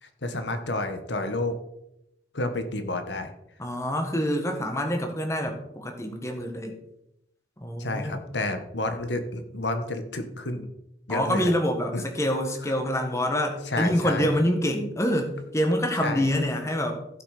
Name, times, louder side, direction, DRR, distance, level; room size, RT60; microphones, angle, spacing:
voice 1, 0.0-1.6 2.3-3.3 7.8-10.7 11.1-11.5 11.9-12.0 12.7-12.8 13.6-14.3 16.0-16.3, left 2 dB, 85° left, 8 dB, 1.5 m, -30 dB
voice 2, 3.6-6.8 7.6-8.3 11.1-17.0, equal, 15° left, 3 dB, 1.6 m, -26 dB
15.5 x 6.3 x 5.0 m, 0.82 s
head